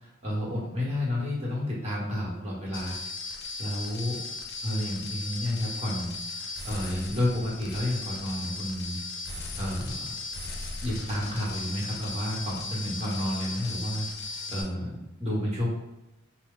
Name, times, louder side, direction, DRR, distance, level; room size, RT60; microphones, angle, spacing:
voice 1, 0.0-3.0 3.2-4.2 4.6-9.0 9.3-10.1 10.8-15.7, left 1 dB, 30° right, -5 dB, 1.3 m, -31 dB
sound 1, 2.7-14.6, left 3 dB, 55° left, 0.6 m, -37 dB
4.4 x 2.2 x 3.7 m, 0.97 s
head